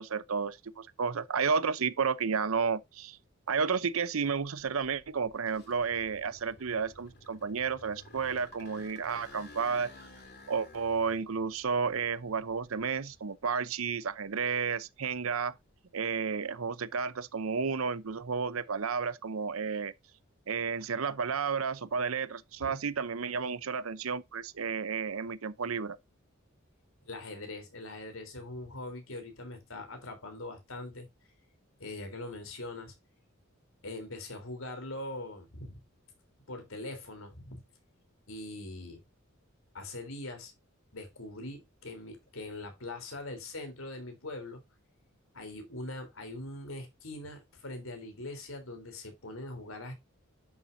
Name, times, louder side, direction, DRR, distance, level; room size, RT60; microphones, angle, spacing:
voice 1, 0.0-3.2 3.5-9.9 10.5-15.5 15.9-19.9 20.5-26.0, right 5 dB, 85° right, 0.7 m, -32 dB
sound 1, 4.5-13.4 13.9-15.7, left 2 dB, 50° left, 2.5 m, -54 dB
voice 2, 27.0-31.1 31.8-32.9 33.8-35.8 36.5-37.6 38.3-39.0 39.7-40.5 40.9-44.6 45.3-49.9, left 2 dB, 75° left, 3.6 m, -42 dB
10.5 x 7.2 x 2.7 m
head